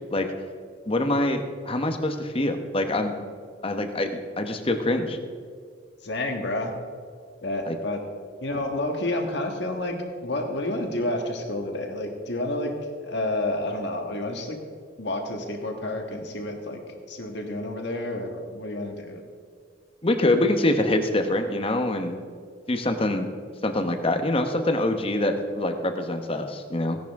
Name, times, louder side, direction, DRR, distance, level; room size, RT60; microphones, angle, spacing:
voice 1, 0.9-3.1 3.6-5.2 7.7-7.8 20.0-22.2 22.7-23.3 23.6-27.0, left 1 dB, 30° left, 6 dB, 0.9 m, -25 dB
voice 2, 6.0-6.7 7.4-8.0 8.4-12.7 13.0-14.6 15.0-16.8 17.1-19.2, left 1 dB, 60° left, 3 dB, 1.6 m, -29 dB
16.5 x 10.5 x 3.6 m, 2.2 s
head